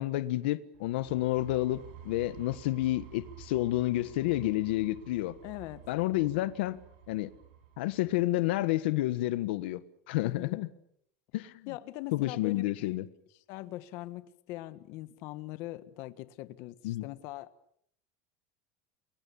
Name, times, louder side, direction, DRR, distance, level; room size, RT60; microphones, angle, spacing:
voice 1, 0.0-5.3 5.9-6.8 7.1-7.3 7.8-9.8 10.1-10.7 11.3-11.5 12.1-13.0 16.8-17.0, left 16 dB, 90° left, 1.4 m, -30 dB
sound 1, 0.7-8.4, right 10 dB, 85° right, 6.0 m, -51 dB
voice 2, 5.4-5.8 10.2-10.6 11.7-13.0 13.5-17.5, left 17 dB, 55° left, 1.5 m, -42 dB
29.5 x 22.0 x 7.1 m
cardioid pair, 160°, 6 cm